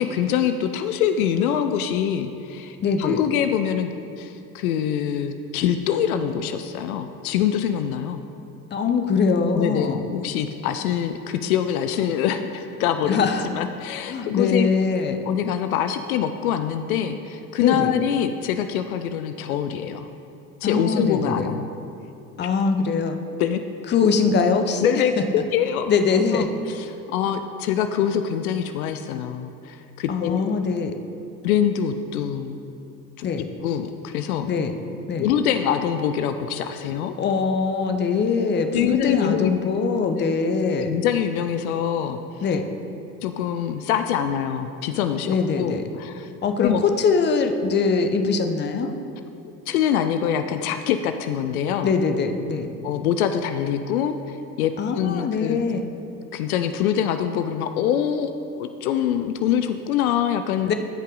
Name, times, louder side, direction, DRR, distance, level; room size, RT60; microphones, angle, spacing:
voice 1, 0.0-3.9 4.2-8.2 9.5-13.2 13.4-14.7 15.3-20.1 20.6-21.7 22.4-22.5 23.4-23.6 24.8-25.9 26.3-30.6 31.4-32.6 33.2-33.3 33.6-34.5 35.2-37.1 38.7-39.6 40.9-42.2 43.2-46.3 46.6-46.8 49.7-51.9 52.8-55.6 56.3-58.3 58.6-60.7, left 9 dB, 65° left, 8 dB, 0.6 m, -24 dB
voice 2, 2.8-3.2 8.7-10.1 13.0-13.5 14.1-15.2 17.6-17.9 20.6-21.5 22.4-23.2 23.9-25.0 25.9-26.5 30.1-30.9 33.2-33.4 34.5-34.7 35.1-35.3 37.2-40.9 42.4-42.6 45.3-45.8 46.4-48.9 51.8-52.7 54.8-55.9 60.6-60.7, left 5 dB, 25° left, 7 dB, 0.7 m, -22 dB
14.0 x 5.4 x 3.8 m, 2.7 s
figure-of-eight pair, 70°, 47 cm